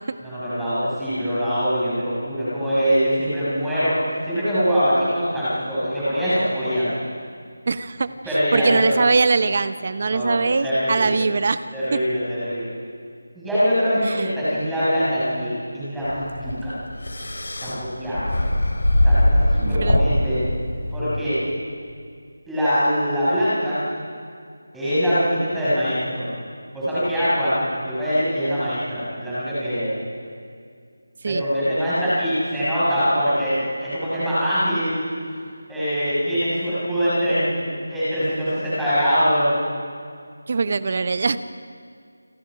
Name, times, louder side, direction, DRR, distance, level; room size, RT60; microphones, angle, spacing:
voice 1, 0.2-4.0 4.3-6.9 8.2-9.0 10.0-11.2 11.7-12.7 13.3-16.8 17.6-18.3 19.0-20.4 20.9-21.4 22.5-23.8 24.7-26.3 26.7-30.0 31.3-35.0 35.7-39.5, equal, ahead, -14 dB, 6.2 m, -23 dB
voice 2, 7.7-8.1 8.5-12.0 14.0-14.3 19.6-20.0 31.2-31.4 40.5-41.4, right 4 dB, 30° right, 13 dB, 0.8 m, -22 dB
sound 1, 16.0-21.2, left 1 dB, 80° left, 5.0 m, -21 dB
28.0 x 26.0 x 5.0 m, 2.2 s
figure-of-eight pair, 175°, 0 cm